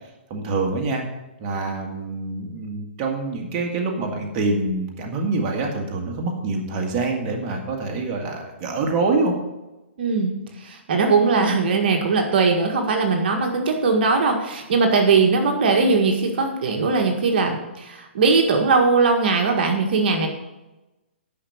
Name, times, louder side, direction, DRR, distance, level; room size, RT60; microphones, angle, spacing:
voice 1, 0.3-1.0 1.4-9.3, right 3 dB, 30° right, 1 dB, 1.9 m, -25 dB
voice 2, 10.0-20.3, right 4 dB, 55° right, 3 dB, 1.7 m, -20 dB
10.5 x 5.9 x 7.2 m, 1.0 s
hypercardioid pair, 150°, 6 cm